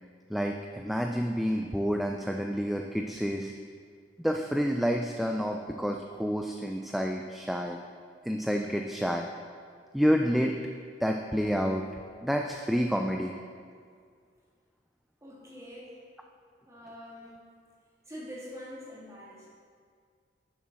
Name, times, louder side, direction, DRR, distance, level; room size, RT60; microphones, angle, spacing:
voice 1, 0.3-3.5 4.2-7.8 8.2-9.3 9.9-10.6 11.0-11.8 12.2-13.3, equal, ahead, 3 dB, 0.4 m, -29 dB
voice 2, 15.2-16.0 16.7-17.4 18.1-19.5, equal, 15° right, -6 dB, 2.8 m, -44 dB
10.5 x 7.1 x 6.2 m, 2.1 s
head